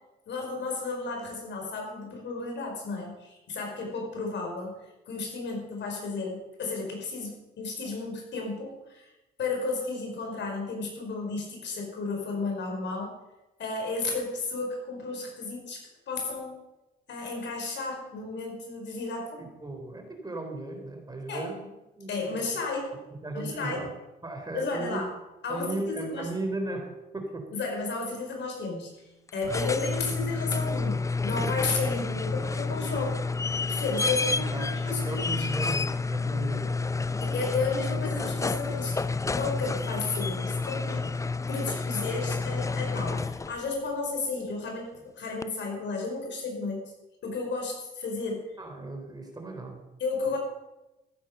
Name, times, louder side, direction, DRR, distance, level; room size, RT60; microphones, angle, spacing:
voice 1, 0.3-4.8 5.0-9.1 9.4-13.1 13.6-16.5 17.1-19.4 21.3-21.5 22.1-22.9 23.3-23.8 24.5-25.1 25.4-26.3 27.5-29.0 29.3-33.2 33.7-35.5 37.2-39.0 39.3-46.9 47.2-48.5 50.0-50.4, left 3 dB, 65° left, 1 dB, 5.3 m, -33 dB
voice 2, 19.2-22.5 23.2-23.9 24.2-25.0 25.5-27.5 34.3-36.8 48.6-49.8 50.3-50.4, right 2 dB, 20° right, 3 dB, 3.7 m, -36 dB
sound 1, 29.3-43.7 45.4-45.5, left 3 dB, 15° left, 0.5 m, -29 dB
15.0 x 8.9 x 6.8 m, 0.99 s
cardioid pair, 90°, 20 cm